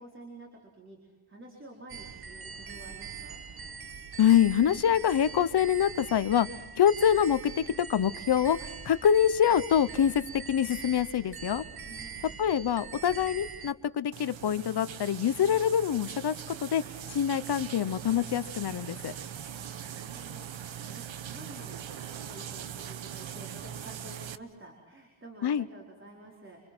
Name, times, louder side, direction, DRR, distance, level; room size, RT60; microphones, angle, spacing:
voice 1, 0.0-3.4 11.8-12.4 19.5-21.9 22.2-26.6, right 2 dB, 25° right, 0 dB, 4.5 m, -50 dB
sound 1, 1.9-13.7, right 6 dB, 50° right, 1.5 m, -42 dB
voice 2, 4.2-6.5 6.8-7.6 7.9-11.6 12.4-16.3 16.6-16.8 17.1-19.1 25.4-25.6, left 9 dB, 55° left, 14 dB, 1.0 m, -25 dB
sound 2, 14.1-24.4, right 9 dB, 75° right, 1.2 m, -41 dB
29.0 x 26.0 x 6.2 m, 1.2 s
wide cardioid pair, 165°, 47 cm